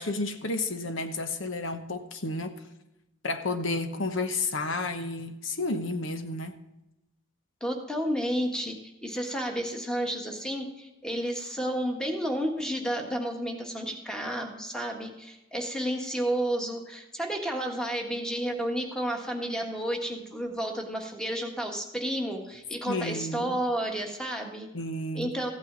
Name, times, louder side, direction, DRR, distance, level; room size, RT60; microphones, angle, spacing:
voice 1, 0.0-2.5 3.2-6.6 22.9-23.5 24.7-25.5, left 2 dB, 75° left, 8 dB, 1.0 m, -31 dB
voice 2, 7.6-24.7 25.1-25.5, right 1 dB, 5° left, 2 dB, 1.5 m, -31 dB
15.0 x 8.9 x 3.9 m, 0.92 s
head